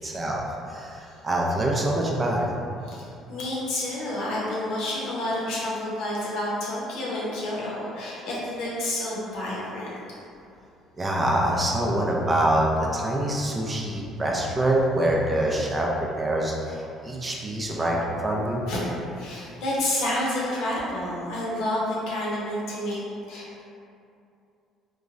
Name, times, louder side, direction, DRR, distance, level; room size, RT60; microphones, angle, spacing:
voice 1, 0.0-2.5 11.0-18.6, right 1 dB, 25° right, -2 dB, 0.4 m, -25 dB
voice 2, 3.3-9.9 18.7-18.8 19.2-23.0 23.3-23.6, left 1 dB, 80° left, -6 dB, 0.7 m, -29 dB
3.0 x 2.1 x 2.4 m, 2.6 s
supercardioid pair, 90°, 0 cm